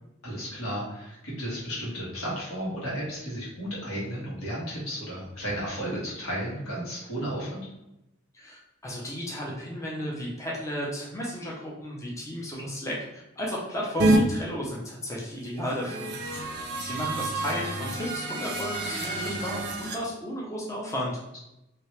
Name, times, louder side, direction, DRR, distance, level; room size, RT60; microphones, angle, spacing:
voice 1, 0.2-7.6, equal, 80° left, -6 dB, 1.5 m, -33 dB
voice 2, 8.3-16.1 16.8-21.2, equal, 15° left, -4 dB, 0.6 m, -34 dB
sound 1, 14.0-14.2 15.6-20.0, right 2 dB, 50° right, 0.5 m, -28 dB
3.0 x 2.8 x 3.1 m, 0.90 s
head